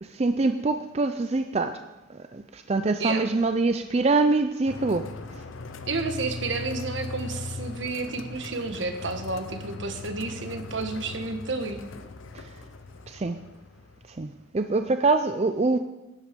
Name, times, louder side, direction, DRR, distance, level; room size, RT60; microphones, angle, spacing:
voice 1, 0.0-1.8 2.1-5.4 12.3-12.5 13.1-13.4 14.1-15.8, right 3 dB, 35° right, 8 dB, 0.4 m, -25 dB
sound 1, 4.7-14.4, left 3 dB, 90° left, 0.7 m, -39 dB
voice 2, 5.9-11.8, right 3 dB, 70° right, 6 dB, 1.3 m, -31 dB
12.0 x 8.9 x 5.2 m, 1.0 s
head